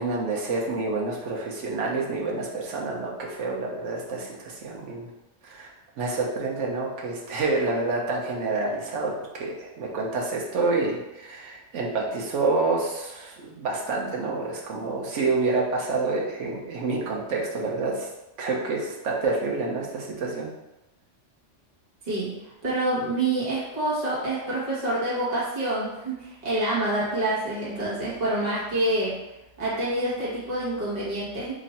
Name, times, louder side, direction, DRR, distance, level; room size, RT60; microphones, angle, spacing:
voice 1, 0.0-5.1 5.4-5.7 6.0-18.1 18.4-20.5, right 3 dB, 75° right, -2 dB, 1.1 m, -28 dB
voice 2, 22.6-29.2 29.6-31.5, right 1 dB, 35° right, -9 dB, 1.3 m, -27 dB
3.0 x 2.6 x 4.1 m, 0.97 s
omnidirectional pair, 1.3 m